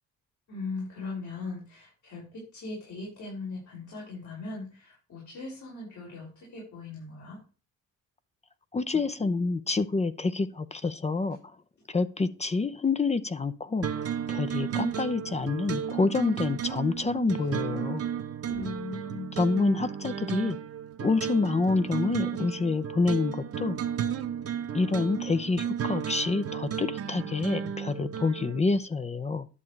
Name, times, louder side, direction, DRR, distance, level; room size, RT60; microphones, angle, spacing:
voice 1, 0.5-7.4 18.5-19.3, left 3 dB, 70° left, -5 dB, 5.4 m, -39 dB
voice 2, 8.7-11.4 11.9-18.0 19.4-20.6 21.0-23.8 24.7-29.5, left 3 dB, 20° left, 11 dB, 0.6 m, -27 dB
sound 1, 13.8-28.6, right 8 dB, 50° right, 1.0 m, -33 dB
11.0 x 6.9 x 3.3 m, 0.35 s
cardioid pair, 90°, 30 cm